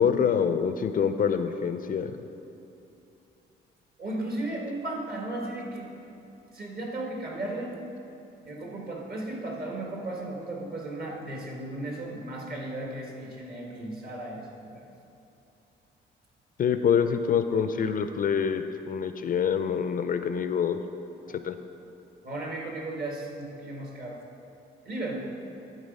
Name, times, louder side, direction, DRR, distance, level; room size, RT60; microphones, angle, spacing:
voice 1, 0.0-2.1 16.6-20.8 21.4-21.6, left 7 dB, 45° left, 9 dB, 0.4 m, -25 dB
voice 2, 4.0-5.9 6.5-7.8 8.4-14.8 21.2-21.4 22.2-24.2 24.8-25.3, right 2 dB, 50° right, -1 dB, 1.6 m, -35 dB
11.0 x 4.0 x 5.3 m, 2.8 s
cardioid pair, 90°, 20 cm